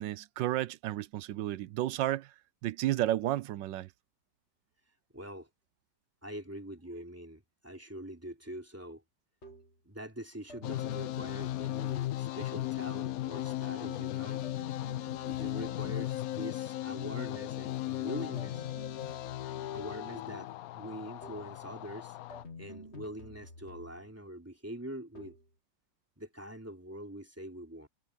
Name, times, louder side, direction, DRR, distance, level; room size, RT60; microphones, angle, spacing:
voice 1, 0.0-2.3 2.6-3.9, right 14 dB, 80° right, 1.4 m, -32 dB
voice 2, 5.1-5.5 6.2-9.0 9.8-14.4 15.3-18.6 19.4-20.5 20.7-22.2 22.6-25.4 26.2-27.9, right 1 dB, 10° right, 3.2 m, -44 dB
sound 1, 9.4-9.8 10.5-12.4 13.3-13.8 14.4-16.3 17.3-17.7 18.4-20.3 21.2-21.6 22.3-24.2 25.2-25.6, left 1 dB, 35° left, 2.5 m, -50 dB
sound 2, 10.6-22.4, left 15 dB, 70° left, 0.9 m, -36 dB
omnidirectional pair, 2.0 m